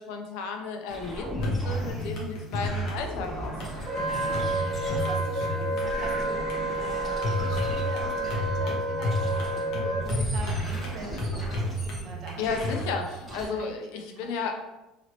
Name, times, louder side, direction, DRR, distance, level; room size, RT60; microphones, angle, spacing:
voice 1, 0.0-4.0 12.4-14.5, left 5 dB, 70° left, 4 dB, 0.5 m, -33 dB
sound 1, 0.9-5.5 5.8-8.7 9.1-9.7 10.0-12.0 12.4-13.5, equal, 10° left, 1.2 m, -37 dB
sound 2, 1.3-12.8, equal, 50° left, 0.9 m, -32 dB
Wind instrument woodwind instrument, 3.9-10.0, right 1 dB, 20° right, 1.3 m, -30 dB
voice 2, 4.6-12.4 13.3-13.7 14.1-14.3, right 2 dB, 40° right, 2 dB, 0.6 m, -43 dB
2.9 x 2.9 x 2.9 m, 0.99 s
cardioid pair, 175°, 0 cm